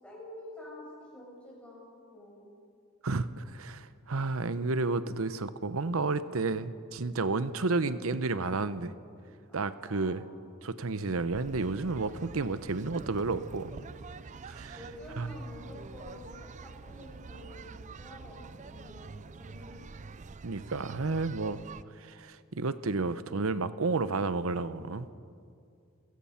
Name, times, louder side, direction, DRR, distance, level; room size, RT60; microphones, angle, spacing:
voice 1, 0.0-0.9 1.1-2.5 9.5-10.1 14.7-19.8, left 1 dB, 5° left, -5 dB, 6.9 m, -49 dB
voice 2, 3.0-8.9 9.5-10.2 10.6-13.8 14.5-14.8 15.2-15.4 20.4-21.6 22.0-25.1, right 3 dB, 70° right, 14 dB, 0.8 m, -31 dB
sound 1, 11.3-21.8, right 4 dB, 35° right, 0.4 m, -46 dB
29.0 x 16.0 x 5.8 m, 2.3 s
head